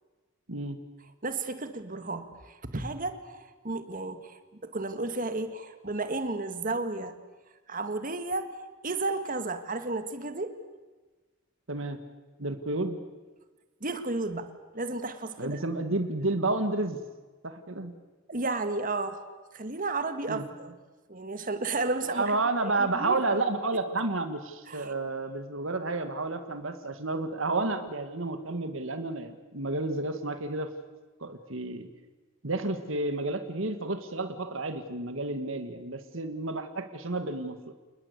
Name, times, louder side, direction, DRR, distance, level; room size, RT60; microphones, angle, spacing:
voice 1, 0.5-0.8 11.7-12.0 12.4-13.0 15.4-17.0 17.4-17.9 20.3-20.4 22.1-30.7 31.2-31.9 32.4-37.7, right 2 dB, 75° right, 8 dB, 1.9 m, -31 dB
voice 2, 1.2-7.2 7.7-10.5 13.8-15.6 18.3-19.2 19.5-20.7 21.1-23.2 24.7-24.9, right 3 dB, 40° right, 9 dB, 1.9 m, -33 dB
28.5 x 20.5 x 8.3 m, 1.3 s
head